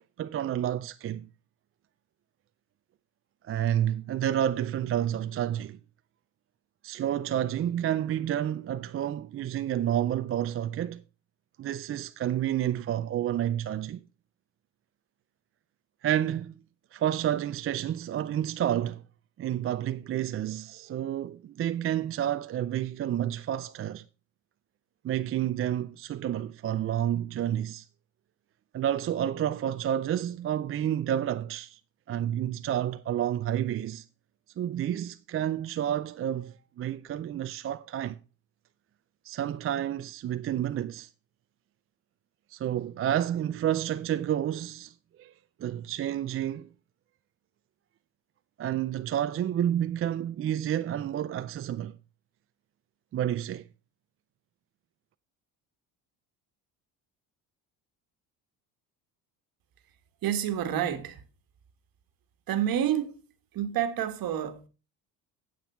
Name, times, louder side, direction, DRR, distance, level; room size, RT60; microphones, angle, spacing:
voice 1, 0.2-1.3 3.4-5.8 6.8-11.0 11.6-14.0 16.0-16.6 16.9-19.0 19.4-24.0 25.0-27.9 28.7-31.8 32.1-34.0 34.6-38.2 39.2-41.1 42.5-45.3 45.6-46.7 48.6-51.9 53.1-53.7, right 11 dB, 35° right, 0.4 m, -30 dB
voice 2, 60.2-61.2 62.5-63.2 63.5-64.7, right 10 dB, 60° right, 1.5 m, -28 dB
9.1 x 7.6 x 4.4 m
supercardioid pair, 85°, 40 cm